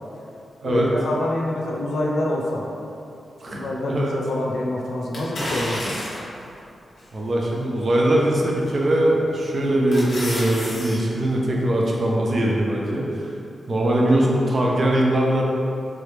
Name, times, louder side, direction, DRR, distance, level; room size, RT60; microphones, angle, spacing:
voice 1, 0.6-2.6 3.5-5.9, left 1 dB, 85° left, -2 dB, 0.5 m, -26 dB
voice 2, 3.4-4.1 7.1-13.3 13.7-15.4, right 1 dB, 45° right, -2 dB, 0.6 m, -21 dB
sound 1, 5.1-6.4 7.0-7.1 8.7-9.0 9.4-11.0 11.3-11.4, left 1 dB, 50° left, 1.2 m, -30 dB
3.7 x 3.2 x 3.4 m, 2.6 s
wide cardioid pair, 110°, 0 cm